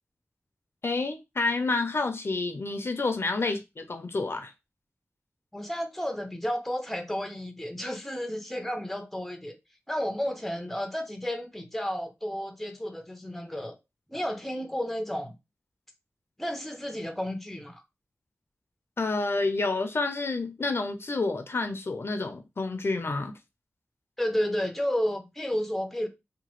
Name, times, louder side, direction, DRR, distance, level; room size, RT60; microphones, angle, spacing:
voice 1, 0.8-4.5 19.0-23.3, left 3 dB, 55° left, 0.5 m, -29 dB
voice 2, 5.5-9.6 9.9-13.8 14.1-15.4 16.4-17.8 24.2-26.1, equal, 5° left, 0.5 m, -32 dB
2.9 x 2.2 x 3.0 m
wide cardioid pair, 85°, 5 cm